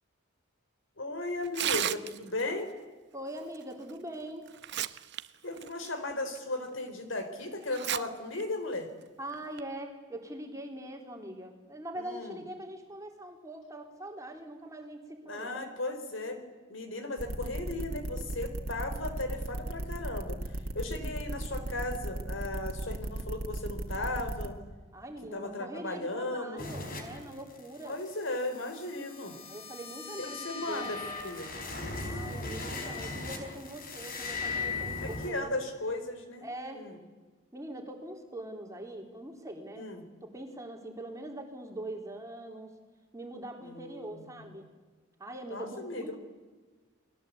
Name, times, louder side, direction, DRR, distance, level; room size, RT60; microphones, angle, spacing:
voice 1, 1.0-2.7 5.4-8.9 12.0-12.4 15.2-16.4 16.7-24.6 25.3-26.7 27.8-29.4 30.2-31.5 35.0-36.5 36.7-37.0 39.8-40.0 43.6-44.5 45.5-46.2, left 2 dB, 65° left, 8 dB, 3.9 m, -36 dB
Tearing, 1.4-2.4 3.9-4.0 4.5-5.2 5.6-5.7 6.4-6.5 7.7-8.0 8.4-8.5 9.3-9.6, right 11 dB, 55° right, 0.9 m, -32 dB
voice 2, 3.1-4.5 9.2-15.6 16.9-17.0 24.9-28.0 29.5-30.9 32.0-35.5 36.4-36.9 37.5-39.9 40.2-42.7 43.1-44.7 45.2-46.2, right 1 dB, 15° right, 2 dB, 3.5 m, -42 dB
sound 1, 17.2-24.5, right 1 dB, 80° right, 2.4 m, -36 dB
sound 2, 26.6-35.3, left 3 dB, 40° left, 4.3 m, -38 dB
29.5 x 21.0 x 8.3 m, 1.4 s
head